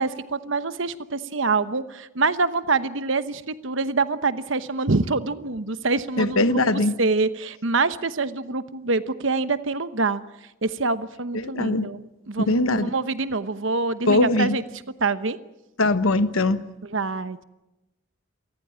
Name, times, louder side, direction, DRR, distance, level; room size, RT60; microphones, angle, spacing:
voice 1, 0.0-10.2 10.6-15.4 16.8-17.4, right 3 dB, 65° right, 12 dB, 1.0 m, -26 dB
voice 2, 6.2-6.9 11.4-11.9 12.5-12.9 14.1-14.6 15.8-16.6, left 2 dB, 80° left, 11 dB, 1.2 m, -21 dB
27.0 x 14.5 x 8.8 m, 0.98 s
head